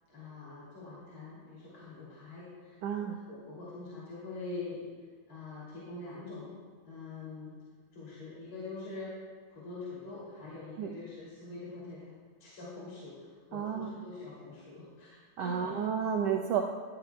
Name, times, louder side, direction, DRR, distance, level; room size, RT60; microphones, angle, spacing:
voice 1, 0.1-4.8 5.3-6.6 6.9-7.5 7.9-9.2 9.5-12.1 12.4-15.8, left 3 dB, 45° left, -9 dB, 3.6 m, -44 dB
voice 2, 2.8-3.2 10.8-10.9 13.5-13.9 15.4-16.6, right 7 dB, 80° right, 2 dB, 1.4 m, -31 dB
14.0 x 13.0 x 2.3 m, 1.5 s
omnidirectional pair, 3.3 m